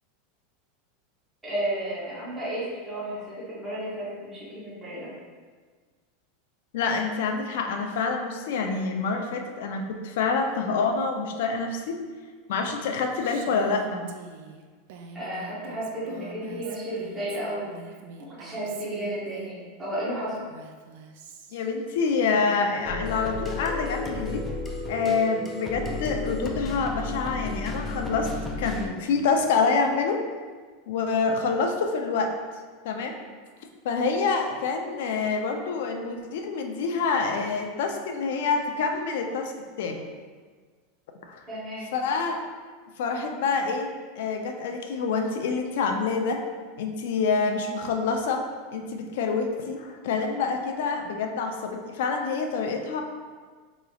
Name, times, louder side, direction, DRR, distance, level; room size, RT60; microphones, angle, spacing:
voice 1, 1.4-5.1 15.1-17.9 18.3-20.5 31.3-31.4 41.5-41.9, right 1 dB, 10° right, -9 dB, 0.9 m, -33 dB
voice 2, 6.7-12.0 12.5-14.0 21.5-24.4 24.9-28.3 28.6-30.2 30.9-32.4 32.8-33.1 33.8-39.5 39.8-40.0 41.2-41.4 41.9-42.4 43.0-46.4 46.8-48.4 48.7-53.0, left 4 dB, 65° left, 3 dB, 0.5 m, -27 dB
Female speech woman speaking, 13.2-19.5 20.4-21.7, right 5 dB, 60° right, 0.3 m, -45 dB
sound 1, 22.8-28.9, left 2 dB, 10° left, 0.4 m, -33 dB
4.9 x 3.0 x 2.4 m, 1.5 s
supercardioid pair, 170°, 0 cm